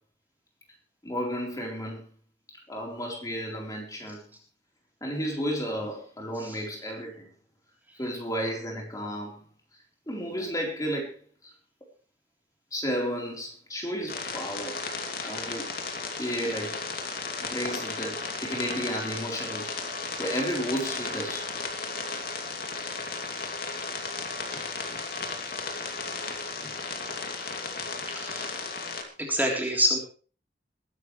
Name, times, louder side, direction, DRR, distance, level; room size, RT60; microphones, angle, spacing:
voice 1, 1.0-2.1 2.7-4.2 5.0-7.3 8.0-9.5 10.1-11.2 11.4-11.5 12.7-14.8 15.2-15.7 16.2-16.8 17.4-19.7 20.2-21.5 24.5-24.6 24.9-25.0 26.6-26.7, equal, 20° left, 0 dB, 4.0 m, -32 dB
sound 1, 14.1-29.0, left 4 dB, 55° left, 2.7 m, -35 dB
voice 2, 28.1-28.5 29.2-30.0, equal, 10° right, 0 dB, 3.5 m, -28 dB
21.5 x 11.5 x 3.3 m, 0.40 s
head